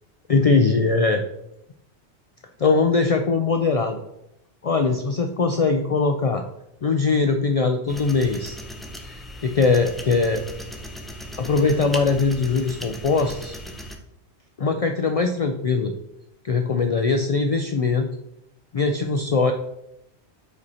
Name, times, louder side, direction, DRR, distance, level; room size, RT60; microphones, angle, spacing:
voice 1, 0.3-1.2 2.6-4.0 4.6-6.4 6.8-8.6 9.0-10.5 11.4-13.6 14.6-15.9 16.4-18.1 18.7-19.5, left 4 dB, 70° left, 5 dB, 0.3 m, -21 dB
sound 1, 7.9-14.0, equal, ahead, 0.4 m, -37 dB
5.0 x 4.6 x 4.1 m, 0.81 s
omnidirectional pair, 1.1 m